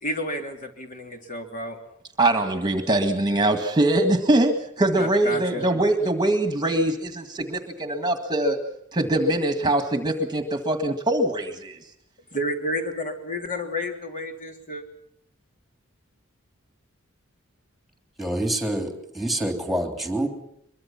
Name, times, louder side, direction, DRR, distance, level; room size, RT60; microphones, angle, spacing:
voice 1, 0.0-1.8 5.0-5.7 12.3-14.8, left 1 dB, 40° left, 4 dB, 3.3 m, -31 dB
voice 2, 2.2-8.6 8.9-11.8, right 1 dB, 20° right, 8 dB, 1.9 m, -23 dB
voice 3, 18.2-20.3, right 1 dB, ahead, 5 dB, 3.3 m, -26 dB
23.5 x 22.5 x 5.9 m, 0.73 s
head